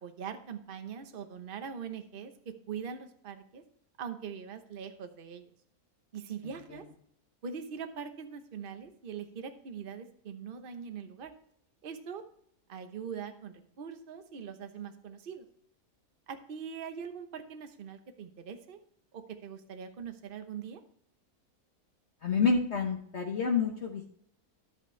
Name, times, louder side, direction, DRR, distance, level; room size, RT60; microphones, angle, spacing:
voice 1, 0.0-3.6 4.0-5.5 6.1-6.8 7.4-11.3 11.8-12.2 12.7-15.5 16.3-18.8 19.1-20.8, right 7 dB, 40° right, 7 dB, 1.0 m, -42 dB
voice 2, 22.2-24.1, left 5 dB, 50° left, 2 dB, 1.2 m, -28 dB
11.5 x 8.0 x 3.2 m, 0.66 s
omnidirectional pair, 1.6 m